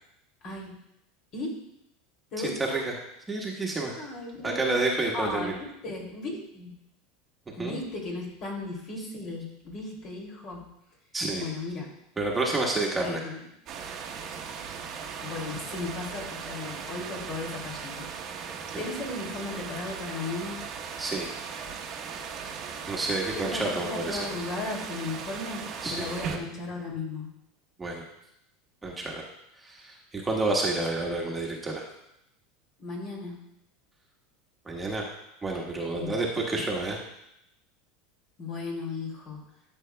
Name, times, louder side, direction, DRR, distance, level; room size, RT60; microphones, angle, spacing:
voice 1, 0.4-0.7 1.3-1.6 2.3-2.8 4.0-4.8 5.1-6.7 7.6-10.6 11.3-11.9 13.0-13.4 15.2-18.1 18.8-20.6 23.4-27.3 31.0-31.1 32.8-33.4 35.9-36.2 38.4-39.5, left 3 dB, 45° left, -1 dB, 2.6 m, -36 dB
voice 2, 3.3-4.0 4.4-5.6 7.6-7.8 11.1-11.4 12.2-13.2 18.7-18.8 21.0-21.3 22.9-24.2 25.8-26.4 27.8-28.0 28.8-29.2 29.6-31.8 34.6-35.1 35.4-37.0, right 2 dB, 15° right, -2 dB, 1.3 m, -29 dB
sound 1, 13.7-26.4, right 6 dB, 40° right, 1.0 m, -38 dB
12.5 x 6.4 x 2.2 m, 0.81 s
supercardioid pair, 125°, 0 cm